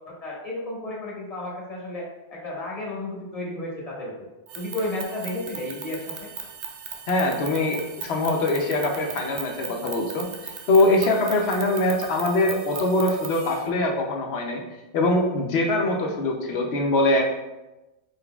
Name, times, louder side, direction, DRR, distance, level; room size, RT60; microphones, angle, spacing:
voice 1, 0.1-4.3 4.5-6.3, left 1 dB, 35° left, -5 dB, 1.1 m, -33 dB
sound 1, 4.5-13.6, right 6 dB, 75° right, 0.9 m, -38 dB
voice 2, 7.1-10.3 10.7-14.6 14.9-17.3, left 2 dB, 65° left, 2 dB, 0.9 m, -23 dB
5.0 x 3.9 x 2.3 m, 1.0 s
omnidirectional pair, 1.2 m